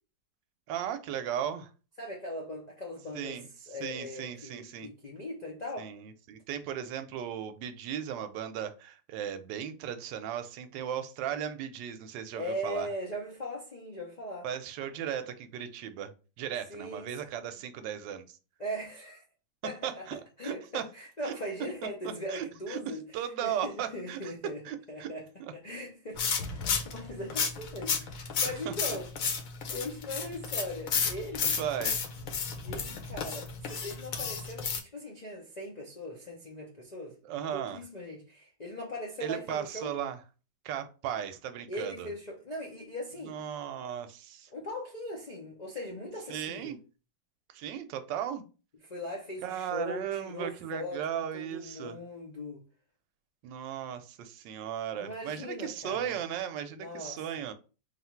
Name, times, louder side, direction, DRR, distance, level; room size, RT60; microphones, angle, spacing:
voice 1, 0.7-1.7 3.1-3.5 3.8-4.9 5.8-12.9 14.4-16.1 16.4-18.4 19.8-20.9 21.2-21.3 22.3-22.8 23.1-24.3 24.6-25.1 25.4-25.5 28.6-28.7 31.4-32.0 37.2-37.8 39.2-40.2 40.6-42.1 43.3-44.5 46.3-46.8 47.5-48.4 49.4-52.0 53.4-57.5, right 9 dB, 85° right, 1.2 m, -36 dB
voice 2, 2.0-5.9 12.3-14.5 16.7-17.1 18.6-19.2 19.6-20.0 20.4-24.6 24.9-25.2 25.5-29.1 29.7-31.6 32.6-37.2 37.5-39.9 41.7-43.4 44.5-46.8 48.9-52.6 54.9-56.2 56.7-57.4, equal, 80° left, 0.3 m, -40 dB
sound 1, 26.2-34.8, left 6 dB, 60° left, 1.0 m, -32 dB
3.4 x 2.4 x 4.3 m
omnidirectional pair, 1.9 m